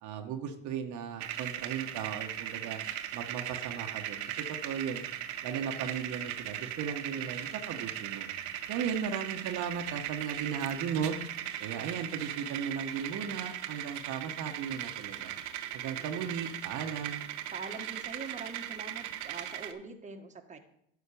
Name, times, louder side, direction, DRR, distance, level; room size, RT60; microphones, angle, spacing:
voice 1, 0.0-2.8 3.1-5.0 5.4-8.3 8.7-11.2 11.6-15.3 15.7-17.2, right 7 dB, 60° right, 5 dB, 1.2 m, -36 dB
sound 1, 1.2-19.7, right 11 dB, 90° right, 0.9 m, -38 dB
voice 2, 15.9-16.3 17.5-20.6, right 4 dB, 20° right, 3 dB, 1.4 m, -44 dB
11.5 x 4.5 x 6.9 m, 0.73 s
supercardioid pair, 85°, 33 cm